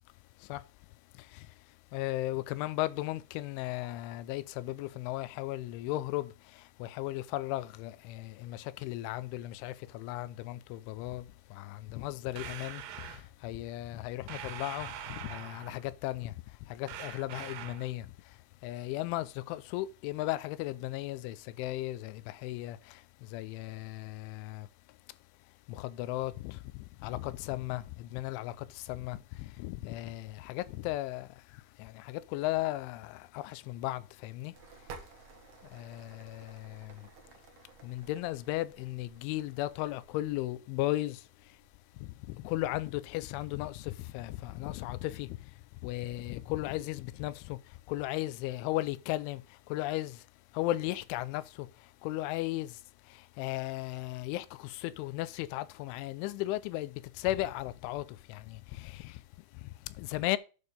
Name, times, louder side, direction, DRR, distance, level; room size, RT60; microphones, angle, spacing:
voice 1, 1.9-6.3 6.8-11.3 11.5-12.8 13.4-16.3 16.7-18.1 18.6-22.8 23.3-24.7 25.7-26.6 27.0-31.3 31.8-34.5 35.7-36.9 37.8-41.2 42.0-45.3 45.8-47.6 47.9-49.4 49.7-50.2 50.5-51.7 52.0-52.7 53.4-59.1 60.0-60.4, left 17 dB, 90° left, 3.1 m, -36 dB
sound 1, 12.4-13.2 14.3-15.9 16.9-17.9, right 10 dB, 90° right, 3.5 m, -43 dB
sound 2, 34.5-44.6, right 5 dB, 65° right, 1.8 m, -55 dB
8.7 x 6.5 x 5.2 m
omnidirectional pair, 5.4 m